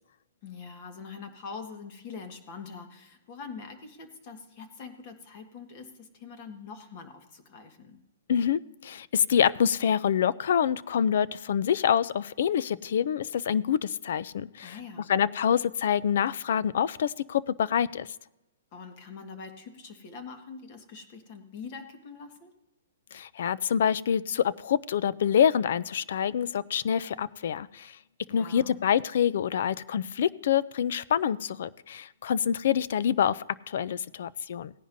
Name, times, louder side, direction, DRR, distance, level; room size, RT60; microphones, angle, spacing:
voice 1, 0.4-8.0 14.6-15.1 18.7-22.5 28.3-28.8, left 5 dB, 35° left, 6 dB, 1.6 m, -44 dB
voice 2, 8.3-14.8 15.1-18.1 23.1-28.0 28.3-34.7, left 8 dB, 60° left, 19 dB, 0.4 m, -26 dB
17.5 x 10.0 x 2.7 m, 0.96 s
hypercardioid pair, 160°, 0 cm